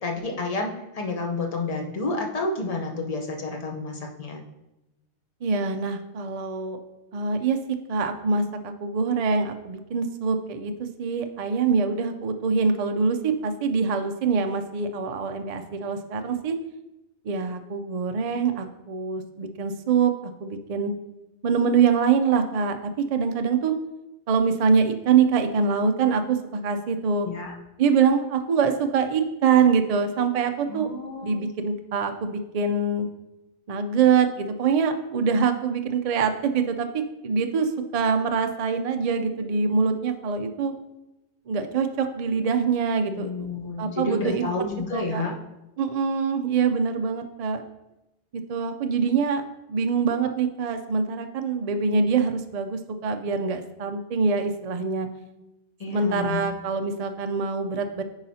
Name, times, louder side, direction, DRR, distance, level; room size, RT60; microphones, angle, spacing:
voice 1, 0.0-4.4 27.2-27.5 30.7-31.4 43.1-45.3 55.8-56.4, left 3 dB, 35° left, 2 dB, 0.8 m, -30 dB
voice 2, 5.4-6.8 7.1-7.6 7.9-16.6 17.2-20.9 21.4-23.7 24.3-27.3 27.8-30.9 31.2-33.1 33.7-40.7 41.5-43.5 43.8-44.4 44.9-45.2 45.8-47.6 48.5-49.4 49.7-55.1 55.9-58.0, right 5 dB, 55° right, 7 dB, 0.4 m, -24 dB
9.5 x 4.8 x 2.7 m, 0.96 s
omnidirectional pair, 1.2 m